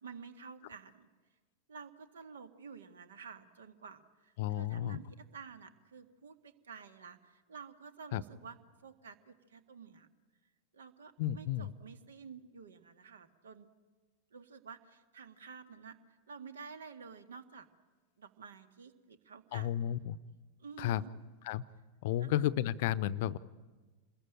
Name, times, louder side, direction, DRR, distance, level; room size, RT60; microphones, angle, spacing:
voice 1, 0.0-1.1 1.7-10.1 10.7-13.7 14.3-17.7 18.2-19.8 20.6-21.1 22.2-22.5, right 5 dB, 65° right, 9 dB, 1.9 m, -51 dB
voice 2, 4.4-5.0 8.1-8.2 11.2-11.7 19.5-20.2 20.8-21.0 21.4-21.6 22.0-23.4, left 12 dB, 50° left, 18 dB, 0.7 m, -32 dB
28.0 x 21.0 x 8.9 m, 1.3 s
figure-of-eight pair, 90°, 0 cm